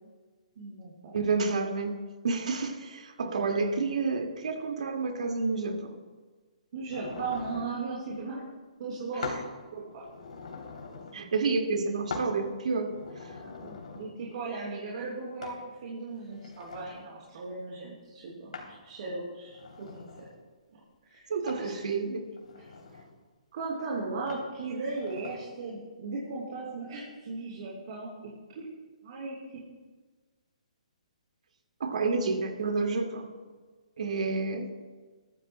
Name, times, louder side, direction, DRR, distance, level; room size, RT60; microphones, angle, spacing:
voice 1, 0.6-1.2 6.7-8.4 8.8-9.4 9.7-10.0 13.6-20.0 21.0-21.8 22.6-22.7 23.5-28.1 28.5-28.6 29.0-29.4, right 3 dB, 55° right, 4.2 m, -37 dB
voice 2, 1.1-2.0 2.2-6.0 11.1-12.9 21.3-22.3 31.8-33.3 34.0-34.8, right 4 dB, 70° right, 2.0 m, -29 dB
sound 1, 6.9-7.7 9.2-9.5 9.9-11.2 12.1-12.3 12.8-14.1 15.4-15.6 16.2-17.0 18.5-18.8 19.4-20.4 21.5-21.7 22.3-23.1 24.3-24.5 24.9-25.4, left 4 dB, 75° left, 2.9 m, -42 dB
21.5 x 14.5 x 2.2 m
hypercardioid pair, 145°, 4 cm